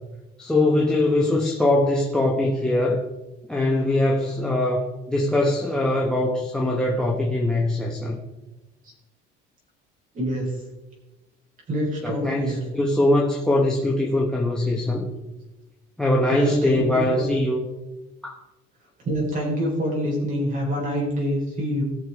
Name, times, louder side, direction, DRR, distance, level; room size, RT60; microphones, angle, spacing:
voice 1, 0.4-3.0 3.5-8.2 12.0-15.1 16.0-17.6 18.2-18.4, left 1 dB, 5° left, -3 dB, 1.0 m, -22 dB
voice 2, 10.1-10.5 11.7-12.6 16.3-17.3 19.0-21.8, equal, 40° right, -2 dB, 4.2 m, -26 dB
17.5 x 6.7 x 3.5 m, 1.1 s
cardioid pair, 165°, 21 cm